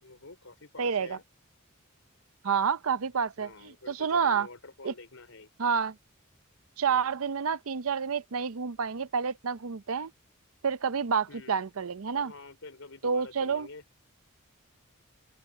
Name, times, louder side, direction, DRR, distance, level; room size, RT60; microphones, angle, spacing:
voice 1, 0.0-1.2 3.4-5.5 11.3-11.6 12.1-13.8, left 3 dB, 70° left, 4.9 m, -48 dB
voice 2, 0.8-1.2 2.4-4.5 4.8-4.9 5.6-6.0 6.8-10.1 10.6-12.3 13.0-13.7, right 6 dB, 70° right, 0.6 m, -29 dB
open air
head